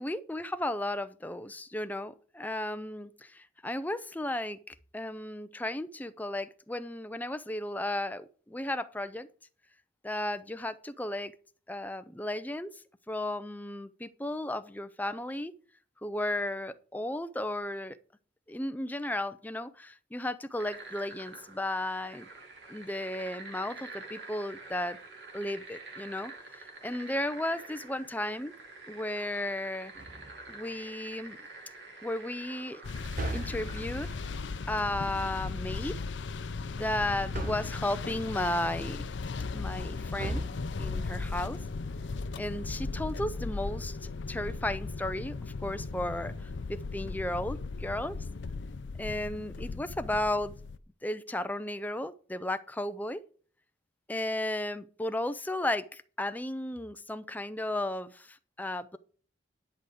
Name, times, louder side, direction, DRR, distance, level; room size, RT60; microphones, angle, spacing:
voice 1, 0.0-9.3 10.0-11.3 11.7-12.8 13.1-15.5 16.0-18.0 18.5-22.3 22.7-25.0 25.3-28.5 28.9-29.9 30.5-31.4 32.0-32.8 33.3-34.1 34.7-36.0 36.7-39.0 39.5-40.4 40.8-41.6 42.4-48.2 49.0-50.5 51.0-53.2 54.1-59.0, left 1 dB, 10° left, 0.5 m, -34 dB
sound 1, 20.6-34.8, right 3 dB, 60° right, 2.4 m, -47 dB
sound 2, 29.9-30.6 33.1-34.1 37.3-37.9 40.2-41.0, right 1 dB, 45° right, 1.2 m, -37 dB
sound 3, 32.8-50.8, left 4 dB, 65° left, 0.5 m, -37 dB
10.5 x 4.8 x 7.7 m
head